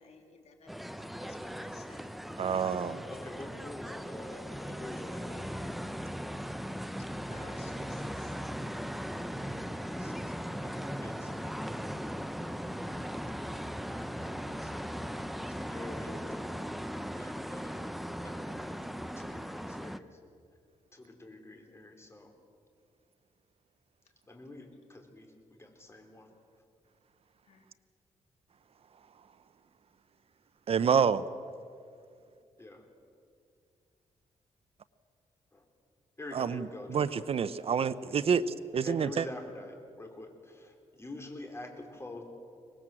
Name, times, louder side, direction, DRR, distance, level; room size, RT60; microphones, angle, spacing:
voice 1, 0.0-2.1 7.3-8.4 27.5-27.6, left 4 dB, 65° left, 3 dB, 3.0 m, -55 dB
sound 1, 0.7-20.0, equal, ahead, 0.8 m, -38 dB
voice 2, 1.6-2.0 3.1-5.5 9.8-11.6 12.9-13.5 14.0-15.0 15.5-16.6 17.1-18.8 19.2-20.2 20.9-22.3 24.3-26.3 32.6-32.8 35.5-35.7 36.2-37.3 37.7-38.0 38.8-42.2, left 2 dB, 20° left, 3 dB, 3.8 m, -47 dB
voice 3, 2.4-3.0 30.7-31.2 36.4-36.6 36.9-39.2, right 6 dB, 55° right, 15 dB, 0.7 m, -28 dB
24.0 x 20.0 x 7.7 m, 2.4 s
cardioid pair, 105°, 12 cm